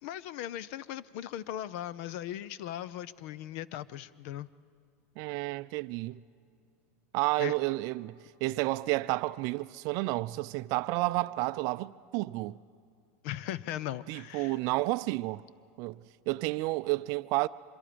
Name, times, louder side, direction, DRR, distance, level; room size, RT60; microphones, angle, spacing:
voice 1, 0.0-4.5 7.4-7.5 13.2-14.6, left 12 dB, 55° left, 0.6 m, -38 dB
voice 2, 5.2-6.2 7.1-12.6 14.1-15.4 15.8-17.5, right 20 dB, 45° right, 0.5 m, -31 dB
25.0 x 22.5 x 5.1 m
supercardioid pair, 140°, 8 cm